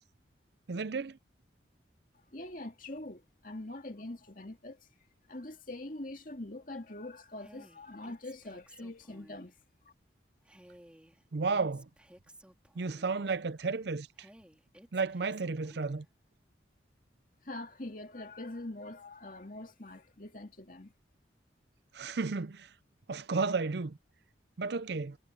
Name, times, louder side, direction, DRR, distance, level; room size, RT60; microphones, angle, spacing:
voice 1, 0.7-1.2 11.3-11.9 12.8-14.3 14.9-16.1 21.9-22.7 23.1-24.0 24.6-25.2, right 4 dB, 60° right, 0.5 m, -33 dB
voice 2, 2.3-4.9 5.3-9.6 17.4-20.9, left 2 dB, 45° left, 2.4 m, -43 dB
Female speech woman speaking, 7.4-9.5 10.4-13.3 14.2-16.1, right 1 dB, 5° right, 3.4 m, -57 dB
head